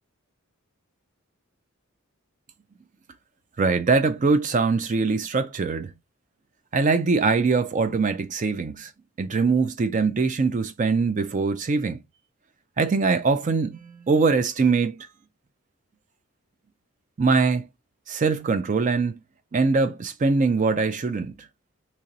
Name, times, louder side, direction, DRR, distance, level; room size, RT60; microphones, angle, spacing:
voice 1, 3.6-5.9 6.7-8.9 9.2-12.0 12.8-15.1 17.2-17.7 18.1-19.1 19.5-21.4, right 4 dB, 35° right, 0.4 m, -22 dB
2.9 x 2.9 x 3.8 m
head